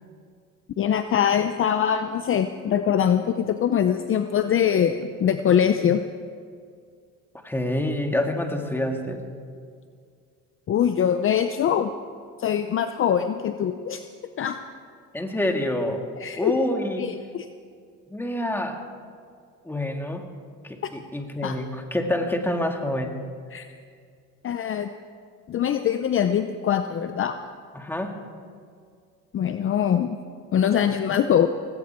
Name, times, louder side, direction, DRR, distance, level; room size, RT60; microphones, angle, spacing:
voice 1, 0.8-6.0 10.7-11.9 12.4-14.0 14.4-14.6 16.2-16.6 17.0-17.5 21.4-21.6 23.5-23.7 24.4-24.9 25.5-27.4 29.3-30.2 30.5-31.5, left 9 dB, 40° left, 9 dB, 0.7 m, -23 dB
voice 2, 7.4-9.3 15.1-16.0 16.3-17.1 18.1-18.8 19.6-20.3 20.6-23.2 27.7-28.2, left 1 dB, 5° left, 3 dB, 1.9 m, -27 dB
18.0 x 16.5 x 4.5 m, 2.2 s
cardioid pair, 105°, 33 cm